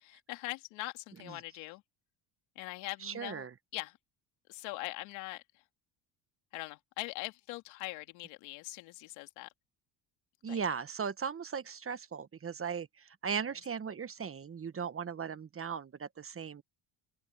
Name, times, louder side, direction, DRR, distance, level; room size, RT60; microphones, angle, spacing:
voice 1, 0.3-1.8 2.6-3.5 3.7-4.0 4.5-5.4 6.5-9.5 10.5-10.6, left 21 dB, 90° left, 2.4 m, -41 dB
voice 2, 3.0-3.5 10.4-16.6, right 6 dB, 30° right, 1.2 m, -38 dB
open air
supercardioid pair, 90°, 44 cm